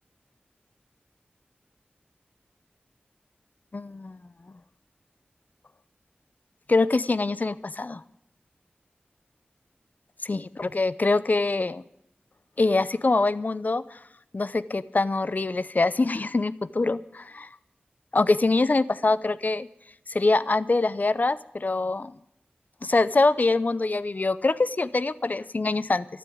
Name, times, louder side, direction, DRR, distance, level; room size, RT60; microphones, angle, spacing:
voice 1, 3.7-4.3 6.7-8.0 10.2-11.8 12.6-14.0 14.3-17.5 18.1-19.7 20.1-22.2 22.8-26.1, left 3 dB, 50° left, 17 dB, 0.6 m, -24 dB
13.0 x 11.5 x 8.6 m, 0.77 s
wide cardioid pair, 75°, 4 cm